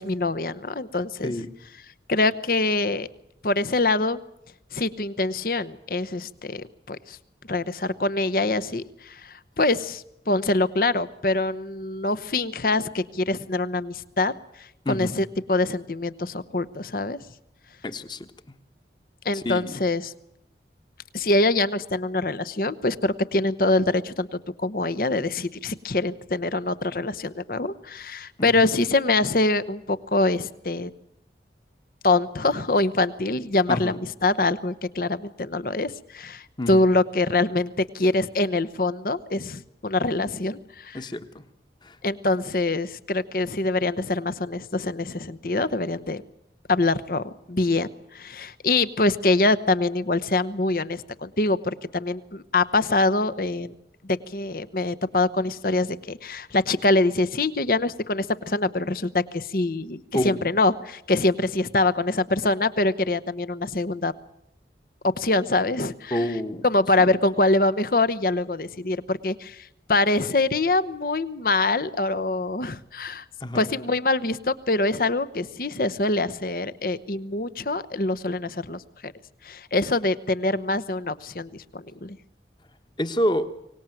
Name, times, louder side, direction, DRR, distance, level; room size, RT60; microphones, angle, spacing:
voice 1, 0.0-1.3 2.1-3.1 3.4-4.2 4.7-7.2 7.5-14.3 14.6-17.2 19.2-20.1 21.1-30.9 32.0-41.0 42.0-46.2 46.7-53.7 54.0-64.1 65.0-66.4 66.6-73.2 73.5-79.1 79.4-82.2, left 2 dB, 55° left, 13 dB, 0.9 m, -24 dB
voice 2, 14.8-15.2 17.8-18.2 19.4-19.7 28.4-28.5 33.7-34.0 36.6-36.7 40.9-41.4 41.9-42.0 60.1-60.4 66.1-66.7 73.4-73.6 83.0-83.5, left 1 dB, 25° left, 10 dB, 1.3 m, -27 dB
24.0 x 19.0 x 9.1 m, 0.81 s
head